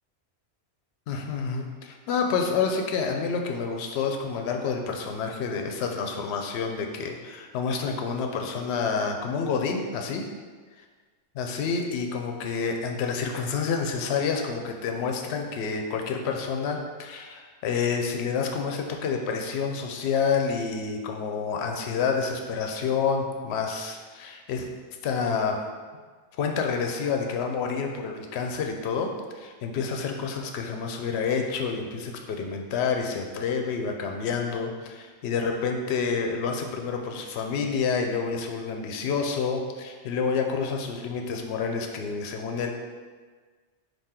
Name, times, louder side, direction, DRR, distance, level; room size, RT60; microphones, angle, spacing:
voice 1, 1.1-10.3 11.3-24.7 25.0-25.6 26.4-42.7, left 5 dB, 70° left, 3 dB, 0.8 m, -28 dB
3.7 x 2.8 x 4.2 m, 1.5 s
omnidirectional pair, 1.2 m